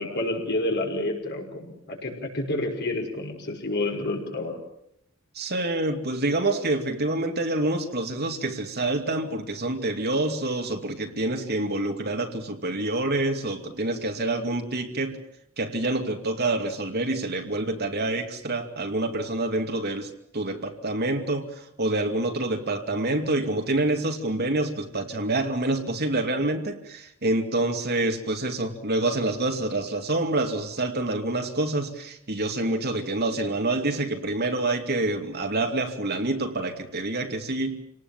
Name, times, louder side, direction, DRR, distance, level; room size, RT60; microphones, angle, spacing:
voice 1, 0.0-4.6, left 2 dB, 55° left, 2 dB, 5.9 m, -29 dB
voice 2, 5.3-15.2 15.6-21.5 21.8-37.9, right 2 dB, 50° right, 4 dB, 2.6 m, -27 dB
28.0 x 19.0 x 7.4 m, 0.76 s
head